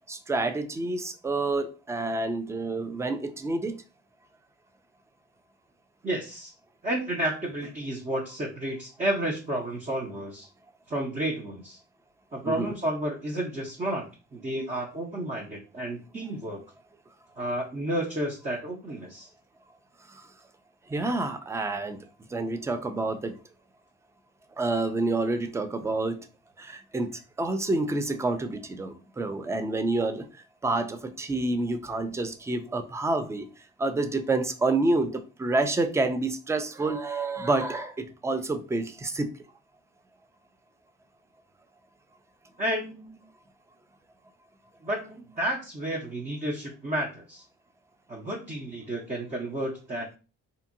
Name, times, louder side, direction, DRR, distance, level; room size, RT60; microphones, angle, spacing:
voice 1, 0.1-3.8 12.4-12.7 20.9-22.0 22.3-23.3 24.6-26.3 26.6-30.3 30.6-33.5 33.8-39.3, right 2 dB, 10° right, 0.3 m, -28 dB
voice 2, 6.0-6.5 6.8-10.5 10.9-11.8 12.3-14.1 14.3-16.6 17.4-19.3 42.6-43.2 44.8-47.4 48.1-50.2, right 1 dB, 25° right, 0.7 m, -31 dB
2.7 x 2.5 x 2.6 m
cardioid pair, 90°, 30 cm